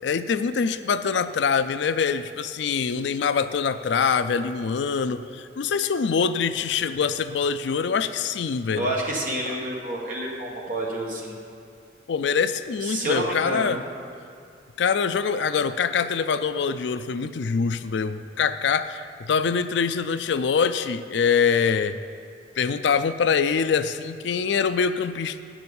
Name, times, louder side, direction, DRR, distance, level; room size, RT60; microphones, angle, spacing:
voice 1, 0.0-8.9 12.1-13.8 14.8-22.0 22.6-25.4, left 6 dB, 70° left, 12 dB, 0.4 m, -24 dB
voice 2, 8.7-11.3 12.8-13.8, right 1 dB, 45° right, -2 dB, 1.7 m, -28 dB
9.5 x 6.1 x 7.0 m, 2.4 s
head